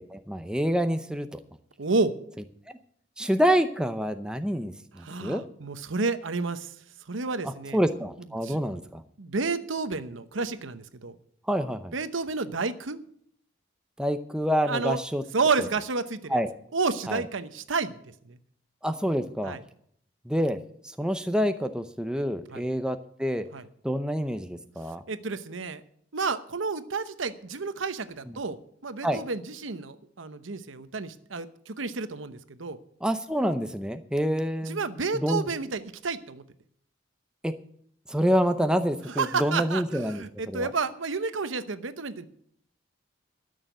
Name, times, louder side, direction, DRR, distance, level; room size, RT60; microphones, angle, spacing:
voice 1, 0.0-1.4 3.2-5.4 7.4-9.0 11.5-11.9 14.0-15.2 16.3-16.5 17.1-17.2 18.8-19.6 20.3-23.5 23.8-25.0 29.0-29.2 33.0-34.8 35.1-35.5 37.4-37.5 38.1-40.7, equal, 5° right, 8 dB, 0.6 m, -27 dB
voice 2, 1.8-2.1 5.0-6.7 7.1-7.8 8.4-8.6 9.2-11.2 11.9-13.0 14.7-15.0 15.3-16.4 16.7-18.0 18.2-18.4 19.4-19.6 22.5-22.6 23.5-23.6 25.1-25.8 26.1-32.8 34.6-36.4 39.1-42.3, right 4 dB, 85° right, 12 dB, 0.9 m, -30 dB
13.0 x 6.6 x 9.1 m, 0.65 s
head